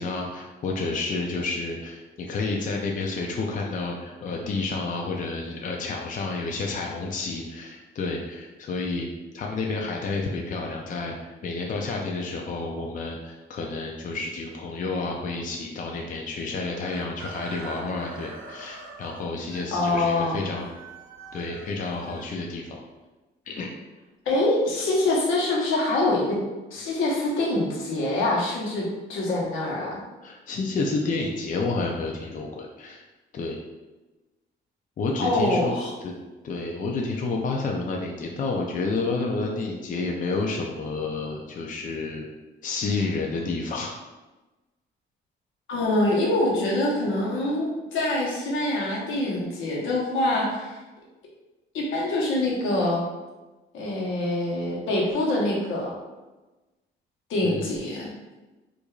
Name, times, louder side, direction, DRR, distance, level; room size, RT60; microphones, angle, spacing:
voice 1, 0.0-9.1 9.3-20.7 21.3-22.8 23.5-23.7 30.2-33.0 33.3-33.6 35.0-35.8 36.0-36.1 36.4-42.3 42.6-44.0 57.4-57.8, left 3 dB, 40° left, 0 dB, 0.5 m, -30 dB
Chicken rooster, 16.8-22.8, right 2 dB, 90° right, 0.6 m, -43 dB
voice 2, 19.7-20.4 24.2-26.4 26.7-30.0 35.2-35.9 45.7-50.8 51.7-53.0 53.7-55.9 57.3-58.1, left 2 dB, 80° left, -3 dB, 1.0 m, -25 dB
4.6 x 2.6 x 2.4 m, 1.1 s
cardioid pair, 90°, 20 cm